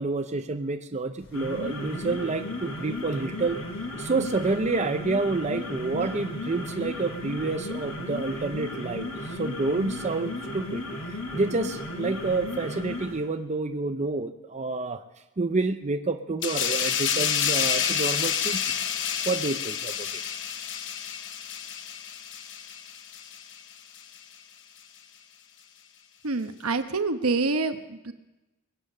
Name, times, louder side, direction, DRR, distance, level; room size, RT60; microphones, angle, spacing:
voice 1, 0.0-3.6 4.0-10.8 11.1-15.0 15.4-18.6 19.3-20.2, right 3 dB, 35° right, 7 dB, 0.6 m, -29 dB
sound 1, 1.2-13.2, left 1 dB, 80° left, 3.7 m, -35 dB
sound 2, 16.4-23.6 23.9-24.2, left 8 dB, 60° left, 0.9 m, -29 dB
voice 2, 26.2-28.1, right 3 dB, 75° right, 8 dB, 1.1 m, -27 dB
22.0 x 8.6 x 6.6 m, 1.0 s
head